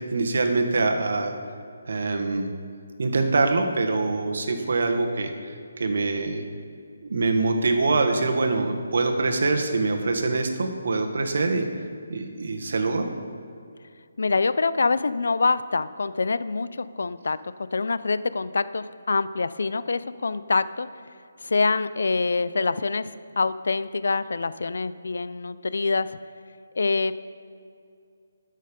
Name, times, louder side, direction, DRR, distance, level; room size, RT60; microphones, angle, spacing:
voice 1, 0.0-1.3 1.9-2.5 3.0-6.4 7.1-11.6 12.1-13.1, right 3 dB, 60° right, 4 dB, 1.4 m, -24 dB
voice 2, 14.2-17.4 17.7-20.9 21.4-23.1 23.4-26.2 26.8-27.2, left 4 dB, 70° left, 15 dB, 0.4 m, -25 dB
11.5 x 6.5 x 5.3 m, 2.3 s
hypercardioid pair, 170°, 0 cm